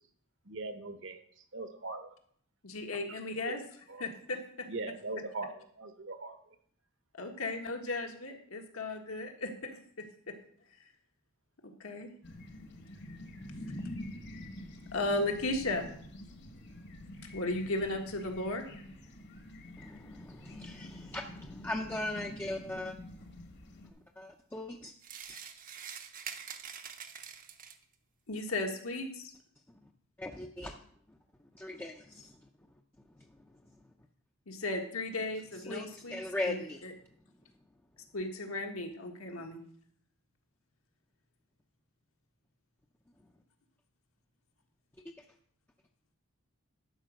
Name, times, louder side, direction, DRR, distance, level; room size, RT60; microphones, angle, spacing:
voice 1, 0.4-1.2 1.5-2.1 3.4-3.6 3.9-4.1 4.7-6.4, right 3 dB, 60° right, 8 dB, 1.1 m, -40 dB
voice 2, 2.6-3.6 4.0-4.7 7.2-9.7 10.3-10.4 11.6-12.1 14.9-15.9 17.3-18.7 28.3-29.3 34.5-36.9 38.1-39.6, left 2 dB, 80° left, 3 dB, 1.6 m, -35 dB
sound 1, 12.2-23.9, left 1 dB, 50° left, 1.3 m, -47 dB
voice 3, 19.8-22.9 24.2-24.9 25.3-25.4 30.2-30.8 31.1-31.2 31.5-32.3 35.7-36.8 45.0-45.1, left 1 dB, 10° left, 1 dB, 0.5 m, -39 dB
sound 2, 25.0-27.9, right 7 dB, 40° right, 0.7 m, -45 dB
12.0 x 5.0 x 6.4 m, 0.62 s
head